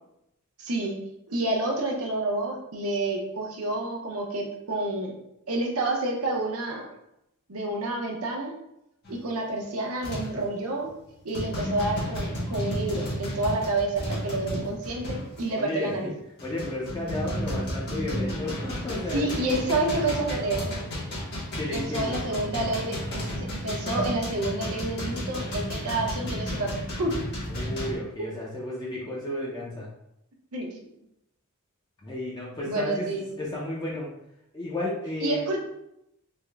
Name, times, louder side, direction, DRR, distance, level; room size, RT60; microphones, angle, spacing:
voice 1, 0.6-1.0 1.3-5.2 5.5-6.9 7.5-8.5 9.1-10.9 11.2-16.1 19.1-20.8 21.7-27.1 28.2-28.3 30.5-30.8 32.7-33.2 35.2-35.6, right 2 dB, 80° right, 1 dB, 0.8 m, -29 dB
sound 1, 9.0-9.3 10.0-10.4 10.9-11.0 11.3-15.5 16.1-27.9, equal, 50° left, 1.2 m, -32 dB
voice 2, 15.5-16.1 16.4-19.4 21.6-22.2 27.5-29.9 32.0-33.1 33.4-34.1 34.5-35.4, left 2 dB, 20° left, -5 dB, 0.5 m, -33 dB
3.5 x 2.1 x 3.3 m, 0.82 s
head